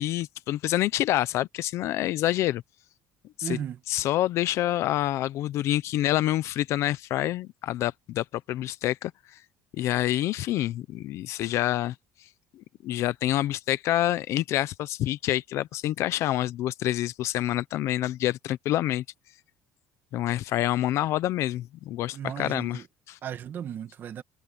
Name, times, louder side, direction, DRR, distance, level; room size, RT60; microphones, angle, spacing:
voice 1, 0.0-2.6 3.4-3.6 3.9-9.4 9.7-11.9 12.8-19.0 20.1-23.2, left 14 dB, 55° left, 0.7 m, -27 dB
voice 2, 3.4-3.8 22.1-22.8 23.2-24.2, right 9 dB, 35° right, 1.7 m, -35 dB
cardioid pair, 165°, 6 cm